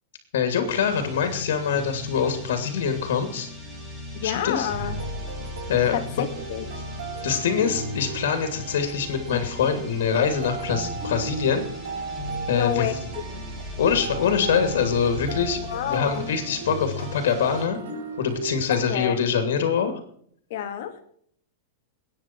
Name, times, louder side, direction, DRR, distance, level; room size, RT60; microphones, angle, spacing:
voice 1, 0.3-3.5 4.2-4.7 5.7-6.2 7.2-11.6 12.5-13.0 13.8-17.8 18.2-20.0, left 7 dB, 75° left, 6 dB, 2.9 m, -24 dB
sound 1, 0.7-17.7, left 1 dB, 10° right, 3.2 m, -37 dB
voice 2, 4.1-5.1 5.9-6.8 12.5-12.9 13.3-13.4 15.6-16.3 18.7-19.2 20.5-21.0, left 10 dB, 50° left, 6 dB, 2.4 m, -29 dB
sound 2, 4.8-19.0, right 4 dB, 75° right, 6.2 m, -37 dB
22.5 x 9.9 x 4.6 m, 0.64 s
supercardioid pair, 180°, 0 cm